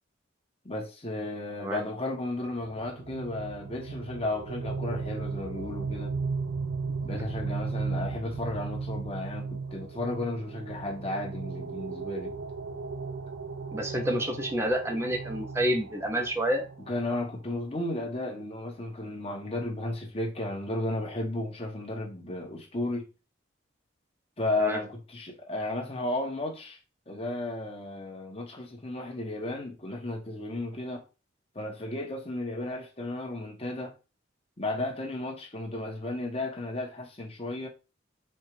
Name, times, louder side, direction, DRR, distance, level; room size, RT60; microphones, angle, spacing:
voice 1, 0.6-6.1 7.0-12.4 16.9-23.1 24.4-26.8 27.1-31.0 31.5-33.9 34.6-37.7, left 2 dB, 30° left, 1.1 m, -34 dB
sound 1, 2.7-17.3, right 4 dB, 90° right, 0.5 m, -36 dB
voice 2, 13.7-16.6 24.6-24.8, equal, 15° right, 0.6 m, -28 dB
4.4 x 2.4 x 4.5 m
head